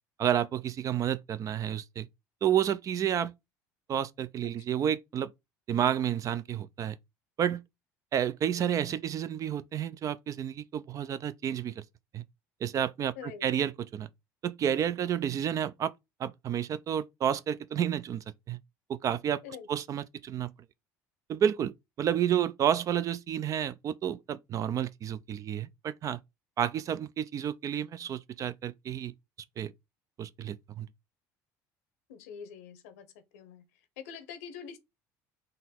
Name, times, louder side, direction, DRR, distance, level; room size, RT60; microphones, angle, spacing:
voice 1, 0.2-2.1 2.4-3.3 3.9-5.3 5.7-7.0 7.4-7.6 8.1-11.8 12.1-12.2 12.6-14.1 14.4-15.9 16.2-18.6 18.9-19.4 19.7-20.5 21.3-26.2 26.6-29.1 29.6-29.7 30.2-30.9, right 9 dB, 45° right, 0.4 m, -30 dB
voice 2, 13.2-13.5 19.4-19.7 32.1-33.1 33.3-33.6 34.0-34.8, left 7 dB, 90° left, 0.8 m, -44 dB
3.9 x 2.6 x 4.2 m
supercardioid pair, 90°, 8 cm